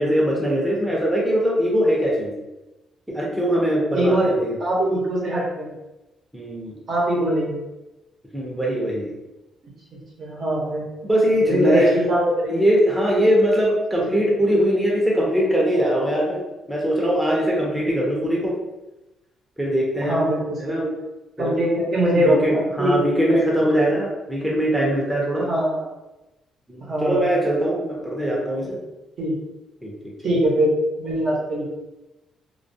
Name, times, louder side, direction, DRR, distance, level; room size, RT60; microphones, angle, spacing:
voice 1, 0.0-2.4 3.1-4.5 6.3-6.8 8.3-9.1 11.0-11.9 12.5-16.4 16.7-18.5 19.6-20.2 20.6-20.9 21.4-21.5 22.2-25.5 26.7-28.8 29.8-30.1, equal, 5° right, -4 dB, 0.6 m, -21 dB
voice 2, 3.9-4.3 4.6-5.7 6.9-7.6 10.2-10.8 11.4-12.6 14.1-14.3 20.0-20.9 21.4-23.0 23.3-23.9 25.4-25.9 26.8-27.3 28.6-28.7 29.2-29.3 30.2-30.7 31.0-31.7, right 1 dB, 55° right, -4 dB, 0.8 m, -22 dB
2.2 x 2.2 x 2.6 m, 1.0 s
cardioid pair, 90°, 0 cm